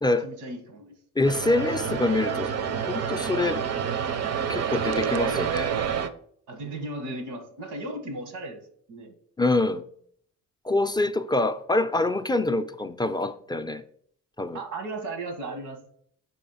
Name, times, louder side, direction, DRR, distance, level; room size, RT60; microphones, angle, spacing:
voice 1, 0.2-1.0 6.5-8.6 8.9-9.1 14.5-15.8, right 2 dB, 85° right, 1.4 m, -36 dB
voice 2, 1.2-2.5 2.9-3.6 4.5-5.7 9.4-9.8 10.6-13.8 14.4-14.6, left 2 dB, 15° left, 0.3 m, -25 dB
sound 1, 1.2-6.1, right 7 dB, 55° right, 0.6 m, -28 dB
5.2 x 4.2 x 5.5 m
cardioid pair, 90°, 30 cm